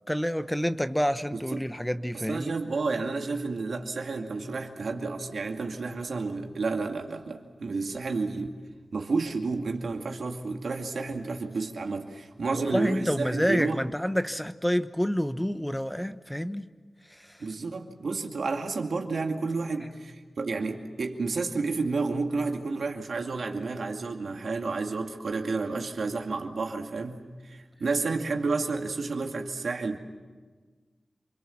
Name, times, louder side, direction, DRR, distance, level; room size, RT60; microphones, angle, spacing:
voice 1, 0.1-2.5 12.5-16.7 17.1-17.4, equal, 5° left, 1.0 m, -28 dB
voice 2, 1.3-1.6 2.1-8.6 8.9-13.8 17.4-30.0, right 3 dB, 80° right, 2.4 m, -31 dB
28.0 x 22.0 x 7.2 m
cardioid pair, 50°, 0 cm